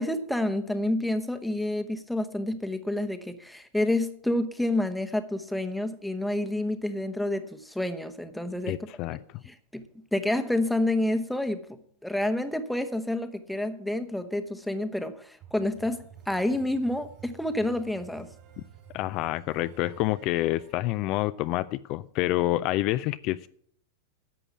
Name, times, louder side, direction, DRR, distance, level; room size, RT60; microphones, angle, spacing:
voice 1, 0.0-8.8 9.4-9.8 10.1-11.7 12.0-18.3, left 1 dB, ahead, 1.0 m, -29 dB
voice 2, 8.7-9.2 18.9-23.5, left 16 dB, 45° left, 0.4 m, -28 dB
sound 1, 15.4-21.0, right 8 dB, 45° right, 3.3 m, -51 dB
11.0 x 6.9 x 7.4 m
hypercardioid pair, 115°, 0 cm